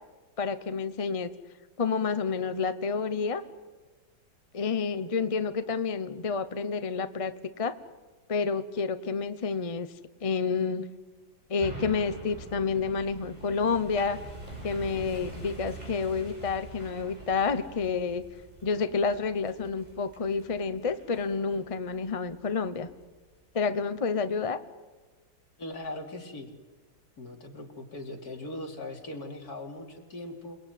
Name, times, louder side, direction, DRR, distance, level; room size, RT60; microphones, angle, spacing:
voice 1, 0.4-1.3 1.8-3.4 4.5-7.7 8.3-9.9 10.2-10.9 11.5-14.2 14.6-18.2 18.6-22.9 23.5-24.6, left 5 dB, 35° left, 11 dB, 0.5 m, -29 dB
sound 1, 11.6-23.0 23.5-23.6, right 2 dB, 20° right, 7.4 m, -45 dB
voice 2, 25.6-26.5 27.2-30.6, left 2 dB, 55° left, 3 dB, 3.3 m, -40 dB
28.5 x 19.5 x 9.3 m, 1.3 s
omnidirectional pair, 2.0 m